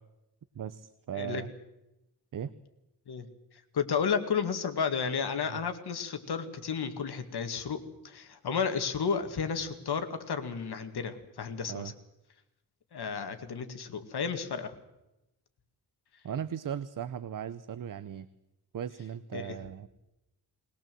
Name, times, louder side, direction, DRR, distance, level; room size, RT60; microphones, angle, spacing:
voice 1, 0.5-1.5 2.3-2.5 5.5-5.6 11.7-11.9 16.2-18.3 18.7-19.9, right 9 dB, 55° right, 13 dB, 0.7 m, -37 dB
voice 2, 3.7-11.9 12.9-14.7 19.3-19.6, left 6 dB, 75° left, 8 dB, 2.0 m, -32 dB
20.5 x 20.0 x 7.7 m, 0.94 s
wide cardioid pair, 165°, 39 cm